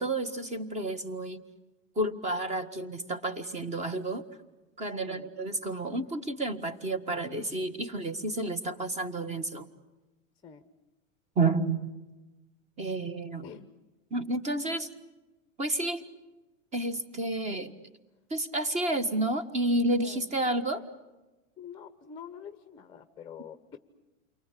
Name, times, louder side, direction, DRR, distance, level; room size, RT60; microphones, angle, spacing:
voice 1, 0.0-1.4 1.9-4.2 4.8-9.7 11.3-11.9 12.8-13.5 14.1-14.9 15.6-16.0 16.7-17.7 18.3-20.8, right 2 dB, 15° right, 12 dB, 1.7 m, -30 dB
voice 2, 4.9-5.3 10.4-10.7 13.4-13.7 20.0-20.3 21.6-23.8, left 7 dB, 10° left, 11 dB, 1.0 m, -46 dB
29.5 x 23.5 x 8.5 m, 1.1 s
supercardioid pair, 155°, 41 cm